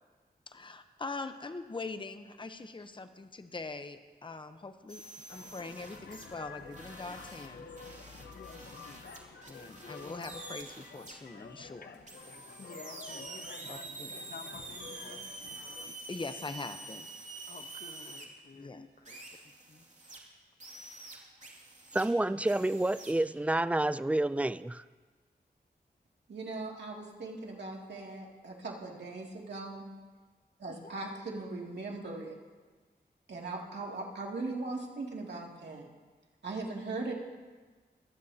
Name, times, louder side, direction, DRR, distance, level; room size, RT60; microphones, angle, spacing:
voice 1, 0.5-5.0 5.3-7.7 9.4-11.9 13.7-14.1 16.1-17.1 18.5-18.9, left 3 dB, 30° left, 8 dB, 0.8 m, -42 dB
sound 1, 4.9-6.3 6.7-11.1 12.1-18.2 19.0-20.2 20.6-22.1 22.4-23.1, right 2 dB, 45° right, 2.4 m, -47 dB
sound 2, 5.3-15.9, left 5 dB, 80° left, 0.9 m, -50 dB
voice 2, 8.3-9.2 12.6-15.3 17.5-19.8 30.7-30.9, left 4 dB, 55° left, 7 dB, 1.1 m, -52 dB
voice 3, 21.9-24.8, right 1 dB, 10° right, 15 dB, 0.4 m, -29 dB
voice 4, 26.3-29.8 30.6-32.4 33.3-35.9 36.4-37.1, right 3 dB, 90° right, -2 dB, 2.5 m, -39 dB
23.0 x 15.5 x 2.8 m, 1.4 s
wide cardioid pair, 90°, 17 cm